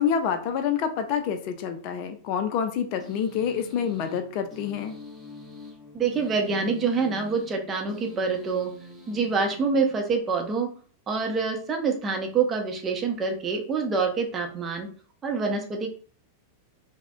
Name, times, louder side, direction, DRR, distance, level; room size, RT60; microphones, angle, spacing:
voice 1, 0.0-4.9, left 7 dB, 45° left, 7 dB, 0.4 m, -27 dB
sound 1, 3.0-10.4, left 1 dB, ahead, 1.0 m, -46 dB
voice 2, 5.9-8.7 9.1-10.7 11.1-14.9 15.2-15.9, right 4 dB, 20° right, 2 dB, 0.6 m, -26 dB
4.7 x 2.1 x 2.3 m, 0.43 s
figure-of-eight pair, 90°, 0 cm